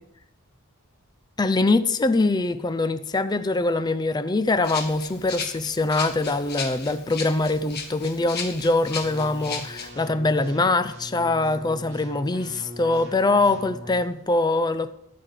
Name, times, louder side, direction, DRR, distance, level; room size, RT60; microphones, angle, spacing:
voice 1, 1.4-14.9, left 2 dB, 20° left, 0.4 m, -23 dB
Rattle (instrument), 4.6-9.9, left 5 dB, 50° left, 1.7 m, -35 dB
sound 1, 9.0-14.0, equal, 65° right, 3.1 m, -40 dB
13.5 x 10.0 x 4.9 m
head